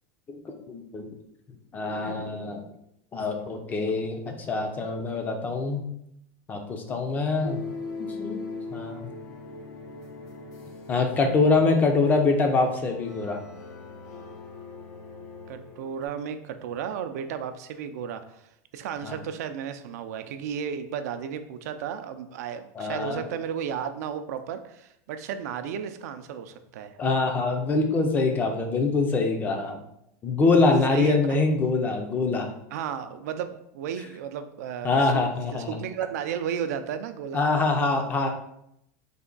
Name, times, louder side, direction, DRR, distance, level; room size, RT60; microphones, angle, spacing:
voice 1, 0.3-1.1 1.7-2.6 3.1-5.8 6.5-7.6 8.2-8.4 8.7-9.1 10.9-13.4 19.0-19.2 22.8-23.3 27.0-29.8 30.2-32.5 34.8-35.8 37.3-38.3, left 3 dB, 20° left, 4 dB, 0.4 m, -24 dB
sound 1, 7.4-16.0, left 4 dB, 80° left, 0.8 m, -40 dB
voice 2, 15.5-18.4 18.7-27.0 30.9-31.4 32.7-35.3 35.5-37.4, right 8 dB, 80° right, 9 dB, 0.4 m, -33 dB
3.3 x 2.2 x 3.8 m, 0.77 s
supercardioid pair, 150°, 9 cm